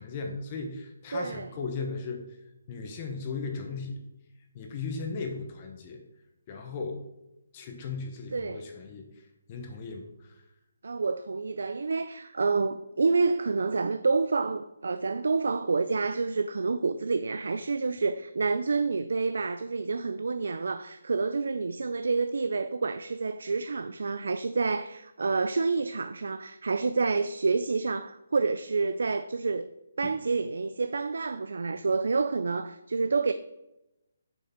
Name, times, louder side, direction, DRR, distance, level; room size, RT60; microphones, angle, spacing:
voice 1, 0.0-2.2 2.7-4.0 4.5-6.0 6.5-7.0 7.5-9.1 9.5-10.4 30.0-30.1, left 4 dB, 20° left, 0.8 m, -36 dB
voice 2, 1.1-1.5 8.3-8.6 10.8-29.7 30.0-33.3, right 4 dB, 70° right, 0.4 m, -28 dB
6.7 x 6.4 x 4.4 m
hypercardioid pair, 175°, 0 cm